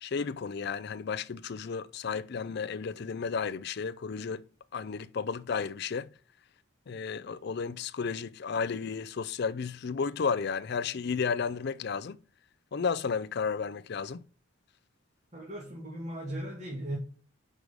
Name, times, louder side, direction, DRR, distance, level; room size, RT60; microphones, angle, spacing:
voice 1, 0.0-4.5 4.7-6.1 6.9-12.2 12.7-14.2, left 5 dB, 50° left, 0.4 m, -33 dB
voice 2, 15.3-17.0, right 1 dB, 35° right, 1.7 m, -37 dB
5.4 x 4.7 x 6.4 m
head